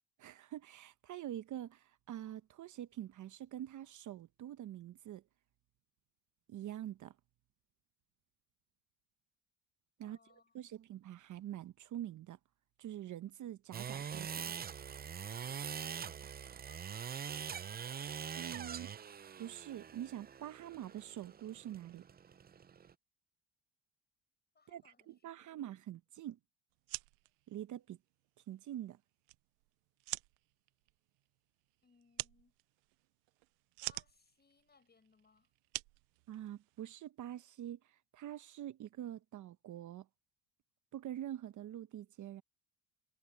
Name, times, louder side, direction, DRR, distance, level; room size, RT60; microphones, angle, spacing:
voice 1, 0.2-5.2 6.5-7.2 10.0-10.2 10.5-12.4 12.8-14.4 18.3-18.9 19.4-22.0 24.7-26.4 27.5-28.0 28.5-29.0 36.3-40.1 40.9-42.4, right 12 dB, 55° right, 1.0 m, -45 dB
voice 2, 10.0-10.8 16.6-17.7 24.5-25.1 25.4-25.6 31.8-32.5 33.8-35.5, left 5 dB, 25° left, 7.2 m, -67 dB
sound 1, 13.7-22.9, right 7 dB, 25° right, 0.6 m, -44 dB
sound 2, 26.7-36.9, right 28 dB, 90° right, 0.5 m, -48 dB
supercardioid pair, 95°, 37 cm